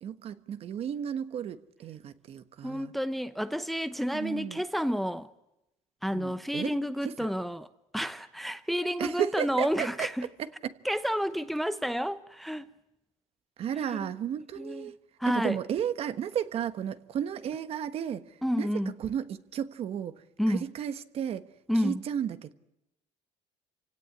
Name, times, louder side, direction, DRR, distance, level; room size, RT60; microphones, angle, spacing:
voice 1, 0.0-2.9 4.1-4.6 6.1-7.3 9.0-10.1 10.4-10.7 13.6-15.0 15.3-18.7 19.0-21.5 21.7-22.5, right 9 dB, 50° right, 1.2 m, -34 dB
voice 2, 2.6-5.3 6.0-10.3 10.8-12.7 13.9-14.1 14.6-14.9 15.2-15.6 18.4-18.9 20.4-20.7 21.7-22.0, equal, ahead, 0.8 m, -30 dB
28.0 x 17.5 x 9.6 m
cardioid pair, 145°, 13 cm